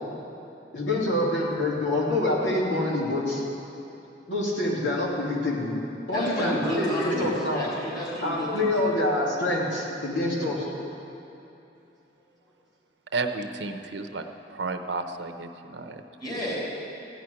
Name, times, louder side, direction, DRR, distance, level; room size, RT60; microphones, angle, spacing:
voice 1, 0.7-3.4 4.3-5.7 6.1-7.6 8.2-10.6, left 1 dB, 80° left, -4 dB, 2.7 m, -26 dB
voice 2, 6.1-8.7 16.2-16.6, equal, 20° left, -5 dB, 4.1 m, -30 dB
voice 3, 13.1-14.2 14.5-16.0, right 3 dB, 70° right, 7 dB, 0.8 m, -32 dB
15.5 x 6.2 x 9.7 m, 2.8 s
head